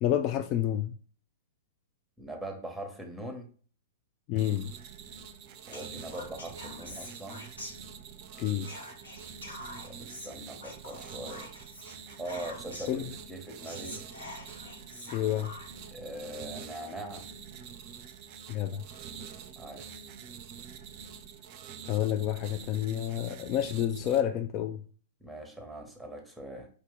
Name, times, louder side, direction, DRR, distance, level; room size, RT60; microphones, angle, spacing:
voice 1, 0.0-0.9 4.3-4.7 8.4-8.7 12.9-13.1 15.1-15.5 18.5-18.9 21.9-24.8, left 11 dB, 35° left, 0.3 m, -29 dB
voice 2, 2.2-3.5 5.7-7.5 9.8-11.5 12.2-13.0 13.3-14.0 15.9-17.3 19.6-19.9 25.2-26.7, right 1 dB, ahead, 1.0 m, -41 dB
sound 1, 4.4-24.2, right 7 dB, 40° right, 0.5 m, -46 dB
Whispering, 5.7-8.2 8.6-13.0 13.4-13.5 13.6-15.9, left 1 dB, 80° left, 2.3 m, -46 dB
4.8 x 2.7 x 3.6 m
figure-of-eight pair, 105°, 0 cm